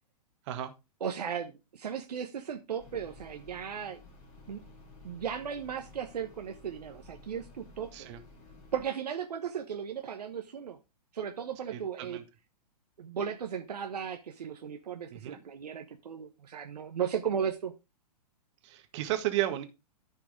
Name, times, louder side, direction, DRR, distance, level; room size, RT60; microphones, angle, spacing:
voice 1, 1.0-4.0 4.5-4.6 5.0-8.1 8.7-10.8 11.1-12.2 13.0-17.7, right 8 dB, 75° right, 5 dB, 1.2 m, -36 dB
sound 1, 2.8-8.9, left 2 dB, 30° left, 3.3 m, -53 dB
voice 2, 11.7-12.2 15.1-15.4 18.6-19.6, right 14 dB, 45° right, 7 dB, 1.7 m, -33 dB
14.0 x 4.7 x 3.5 m, 0.25 s
hypercardioid pair, 120°, 21 cm